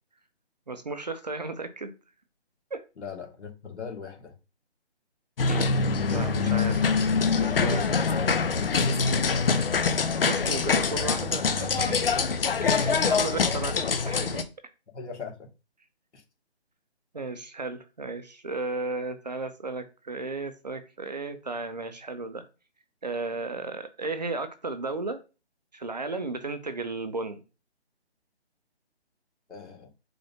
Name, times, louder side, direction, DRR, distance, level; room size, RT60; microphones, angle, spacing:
voice 1, 0.7-1.9 2.7-2.8 5.5-5.8 6.1-7.0 7.4-7.9 10.2-12.1 12.6-14.5 17.1-22.4 23.0-25.2 25.7-27.4, right 3 dB, 40° right, 0.5 m, -34 dB
voice 2, 3.0-4.4 8.0-8.4 8.7-9.5 14.9-15.4 16.1-16.2 29.5-29.9, left 4 dB, 85° left, 1.8 m, -39 dB
sound 1, 5.4-14.4, left 5 dB, 55° left, 0.6 m, -24 dB
3.8 x 2.5 x 3.4 m
hypercardioid pair, 165°, 33 cm